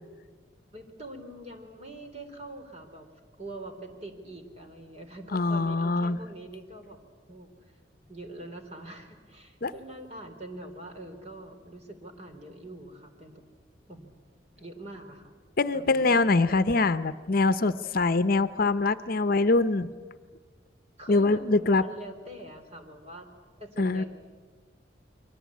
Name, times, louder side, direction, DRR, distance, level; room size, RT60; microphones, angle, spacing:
voice 1, 0.7-3.1 3.4-7.0 7.3-7.8 8.1-13.4 13.9-14.1 14.6-15.3 15.7-16.2 16.6-16.7 21.0-23.3 23.6-24.1, right 1 dB, 35° right, 5 dB, 3.5 m, -44 dB
voice 2, 5.3-6.2 9.6-9.7 15.6-19.9 21.1-21.8 23.8-24.0, left 3 dB, 55° left, 13 dB, 0.8 m, -24 dB
29.5 x 23.0 x 8.5 m, 1.5 s
head